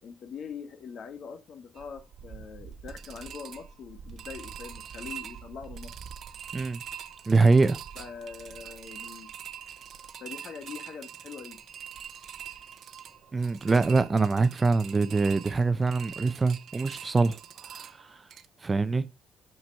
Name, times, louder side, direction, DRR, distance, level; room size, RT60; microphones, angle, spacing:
voice 1, 0.0-5.9 7.9-9.3 10.2-11.6, left 6 dB, 60° left, 1.5 m, -43 dB
sound 1, 1.7-18.5, right 8 dB, 65° right, 0.8 m, -44 dB
voice 2, 7.3-7.8 13.3-17.4 17.8-17.9 18.6-19.0, right 3 dB, 30° right, 0.6 m, -24 dB
6.1 x 5.9 x 5.4 m
cardioid pair, 90°, 0 cm